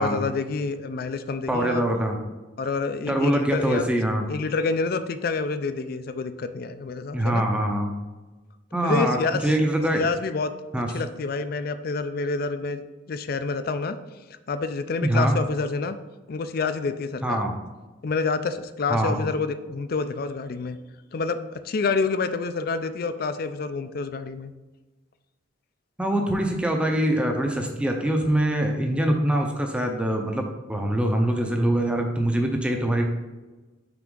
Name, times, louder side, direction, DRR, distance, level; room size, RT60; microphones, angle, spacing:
voice 1, 0.0-1.8 2.6-3.9 4.3-7.4 8.7-9.5 9.9-10.5 10.9-12.8 13.1-14.0 14.5-16.0 16.3-17.4 18.0-20.8 21.1-24.5, left 4 dB, 50° left, 11 dB, 0.4 m, -28 dB
voice 2, 1.5-2.2 3.1-4.3 7.1-7.9 8.7-10.1 10.7-10.9 15.0-15.4 17.2-17.5 18.9-19.2 26.0-33.0, right 1 dB, 5° right, 2 dB, 0.5 m, -23 dB
5.9 x 4.4 x 3.8 m, 1.2 s
head